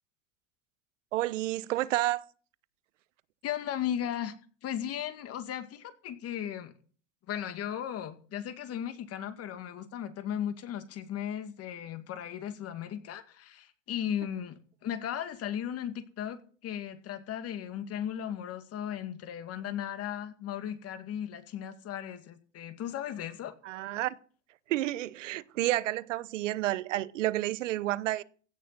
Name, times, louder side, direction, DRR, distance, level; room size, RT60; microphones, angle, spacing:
voice 1, 1.1-2.2 23.6-24.2 24.7-28.2, right 15 dB, 80° right, 0.9 m, -30 dB
voice 2, 3.4-4.3 4.6-6.7 7.3-23.5, left 10 dB, 40° left, 2.2 m, -36 dB
16.5 x 6.8 x 7.5 m
hypercardioid pair, 105°, 37 cm